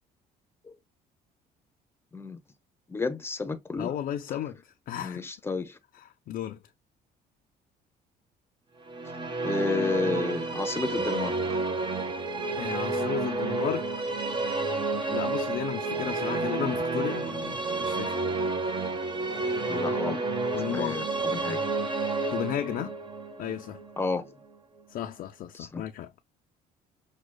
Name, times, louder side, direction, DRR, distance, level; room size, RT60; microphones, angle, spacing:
voice 1, 2.9-3.9 4.3-4.4 5.0-5.8 9.4-11.6 19.7-20.2 20.7-21.6 24.0-24.3 25.5-25.8, left 4 dB, 15° left, 0.7 m, -31 dB
voice 2, 3.8-5.2 6.0-6.6 12.5-14.1 15.1-18.2 20.5-21.0 22.3-22.9 23.4-23.8 24.9-26.1, left 11 dB, 60° left, 0.5 m, -34 dB
Musical instrument, 8.9-24.3, right 3 dB, 30° right, 0.9 m, -30 dB
6.1 x 2.3 x 2.2 m
cardioid pair, 110°, 17 cm